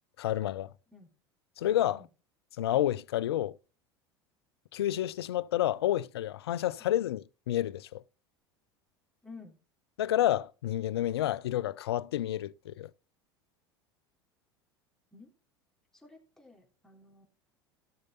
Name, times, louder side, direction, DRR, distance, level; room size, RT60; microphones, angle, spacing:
voice 1, 0.2-0.7 1.6-2.0 2.6-3.6 4.7-8.0 10.0-12.9, left 13 dB, 70° left, 0.5 m, -30 dB
voice 2, 9.2-9.6 15.1-15.3 15.9-17.3, left 4 dB, 5° left, 3.9 m, -52 dB
16.5 x 6.5 x 4.0 m
figure-of-eight pair, 75°, 14 cm